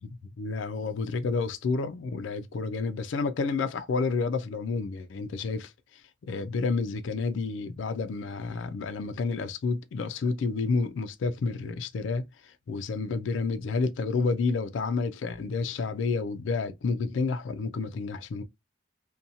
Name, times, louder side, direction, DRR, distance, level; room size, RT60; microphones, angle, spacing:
voice 1, 0.0-5.7 6.3-18.4, left 4 dB, 80° left, 0.4 m, -30 dB
2.7 x 2.2 x 2.5 m
head